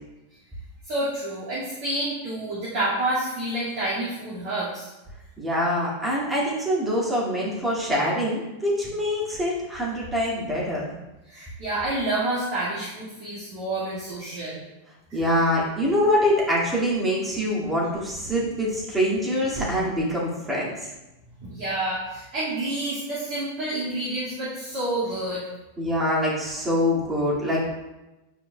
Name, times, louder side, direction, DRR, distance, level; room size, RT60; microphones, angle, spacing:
voice 1, 0.8-4.9 11.3-14.6 21.4-25.4, right 1 dB, 45° right, -10 dB, 2.1 m, -28 dB
voice 2, 5.4-10.8 15.1-20.7 25.8-27.7, equal, 10° right, -6 dB, 2.2 m, -24 dB
9.8 x 4.7 x 2.3 m, 1.0 s
figure-of-eight pair, 90°, 0 cm